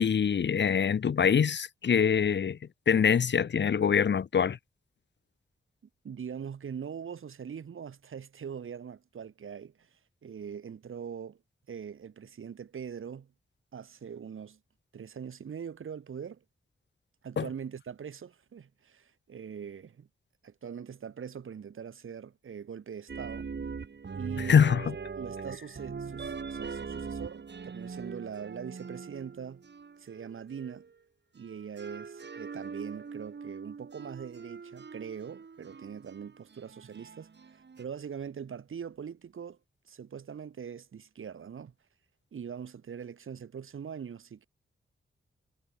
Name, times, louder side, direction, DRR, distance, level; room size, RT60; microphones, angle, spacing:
voice 1, 0.0-2.6 2.9-4.6 17.4-17.5 24.5-24.9, left 7 dB, 60° left, 0.9 m, -24 dB
voice 2, 6.0-11.4 11.7-13.3 13.7-14.6 14.9-16.4 17.2-20.1 20.4-23.5 24.1-24.6 25.1-29.6 30.0-30.9 31.3-39.6 39.9-41.7 42.3-44.5, right 7 dB, 80° right, 7.0 m, -42 dB
sound 1, 23.1-30.9 31.4-37.8, right 5 dB, 60° right, 3.8 m, -42 dB
cardioid pair, 60°, 21 cm